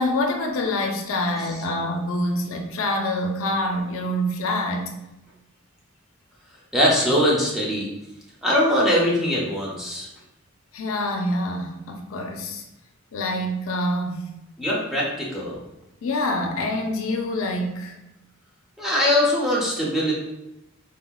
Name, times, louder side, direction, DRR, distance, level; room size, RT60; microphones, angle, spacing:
voice 1, 0.0-4.9 10.7-12.6 13.1-14.3 16.0-18.0, left 1 dB, 75° left, 3 dB, 0.4 m, -26 dB
voice 2, 6.7-7.9 8.4-10.1 14.6-15.6 18.8-20.1, equal, ahead, -5 dB, 0.5 m, -21 dB
3.4 x 2.1 x 2.2 m, 0.91 s
head